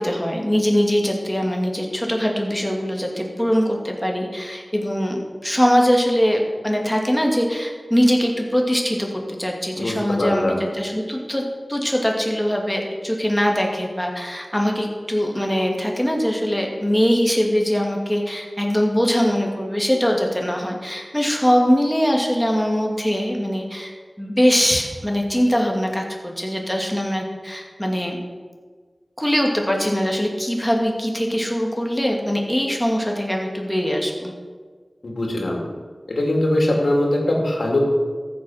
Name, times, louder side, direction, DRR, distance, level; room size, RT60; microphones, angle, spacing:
voice 1, 0.0-11.4 11.7-28.2 29.2-34.3, equal, 5° left, 1 dB, 2.3 m, -22 dB
voice 2, 9.8-10.5 35.0-35.6 36.1-37.8, left 1 dB, 90° left, -1 dB, 2.4 m, -21 dB
14.0 x 6.7 x 5.7 m, 1.5 s
wide cardioid pair, 40°, 0 cm